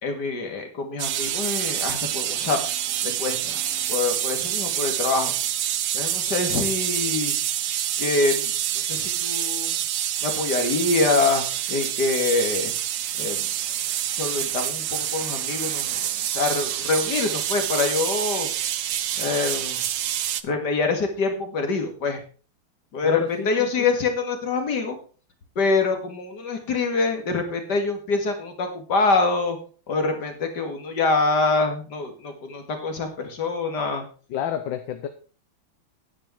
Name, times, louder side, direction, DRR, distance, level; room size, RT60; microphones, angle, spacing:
voice 1, 0.0-2.6 3.2-3.6 3.9-5.4 5.9-7.3 8.0-8.5 8.8-9.8 10.2-12.7 13.2-13.5 14.2-18.5 19.2-19.8 20.4-22.2 22.9-25.0 25.6-29.6 29.9-34.0, left 3 dB, 55° left, 5 dB, 2.5 m, -25 dB
sound 1, 1.0-20.4, right 11 dB, 75° right, 0.7 m, -27 dB
voice 2, 23.0-23.7 34.3-35.1, left 10 dB, 70° left, 9 dB, 1.5 m, -29 dB
10.0 x 9.4 x 4.6 m, 0.38 s
omnidirectional pair, 2.2 m